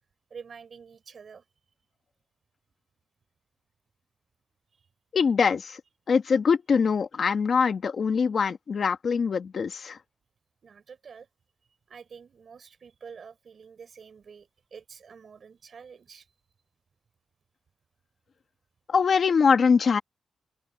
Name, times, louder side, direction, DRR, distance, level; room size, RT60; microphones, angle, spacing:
voice 1, 0.3-1.4 4.7-4.8 10.6-11.3 11.9-16.3, right 6 dB, 65° right, 6.8 m, -47 dB
voice 2, 5.1-5.8 6.1-10.0 18.9-20.0, left 5 dB, 65° left, 1.6 m, -23 dB
open air
cardioid pair, 90°, 0 cm